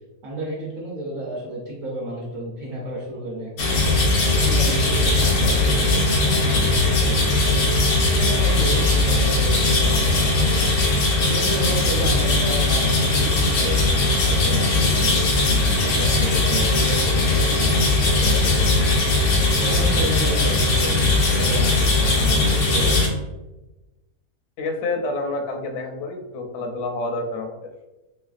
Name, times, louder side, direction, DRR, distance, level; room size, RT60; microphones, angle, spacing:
voice 1, 0.2-4.0 4.3-7.7 8.1-15.4 15.8-18.9 19.6-23.0, right 1 dB, 65° right, -5 dB, 1.1 m, -32 dB
sound 1, 3.6-23.1, left 2 dB, 85° left, 1.3 m, -19 dB
voice 2, 24.6-27.6, left 2 dB, 65° left, 2 dB, 0.7 m, -28 dB
3.2 x 3.2 x 2.4 m, 1.1 s
omnidirectional pair, 1.6 m